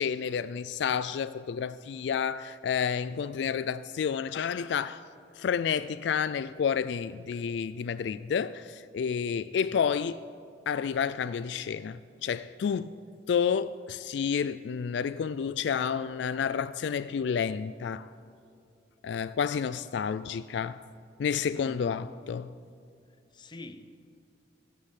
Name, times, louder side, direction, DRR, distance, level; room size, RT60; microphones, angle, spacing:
voice 1, 0.0-5.0 5.3-10.2 10.7-13.0 13.3-18.1 19.0-20.8 21.2-22.5, left 7 dB, 65° left, 0.3 m, -30 dB
voice 2, 21.5-22.1 23.3-24.0, left 1 dB, 25° left, 0.6 m, -45 dB
15.0 x 8.5 x 8.2 m
head